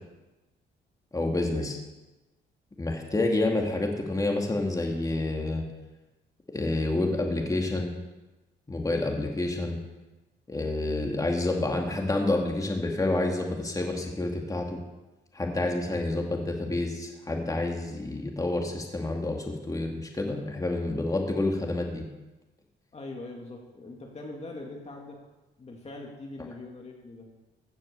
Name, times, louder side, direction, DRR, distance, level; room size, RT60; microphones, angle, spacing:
voice 1, 1.1-1.7 2.8-5.6 6.5-7.9 8.7-9.8 10.5-14.8 15.3-22.0, left 2 dB, 15° left, 1 dB, 2.2 m, -28 dB
voice 2, 22.9-25.2 25.6-27.3, left 2 dB, 35° left, 0 dB, 2.1 m, -42 dB
16.0 x 6.3 x 6.8 m, 1.1 s
cardioid pair, 90°, 20 cm